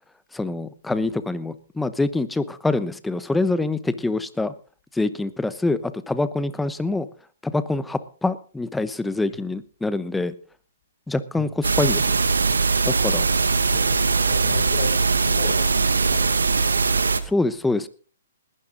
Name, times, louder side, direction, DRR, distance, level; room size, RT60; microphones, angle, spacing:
voice 1, 0.3-4.5 4.9-7.1 7.4-10.3 11.1-12.2 12.8-13.3 17.2-17.9, left 2 dB, 5° left, 14 dB, 0.9 m, -25 dB
sound 1, 11.6-17.2, right 4 dB, 90° right, 1.4 m, -21 dB
voice 2, 13.4-16.9, left 6 dB, 45° left, 3 dB, 3.7 m, -37 dB
19.5 x 12.0 x 3.9 m, 0.40 s
hypercardioid pair, 140°, 0 cm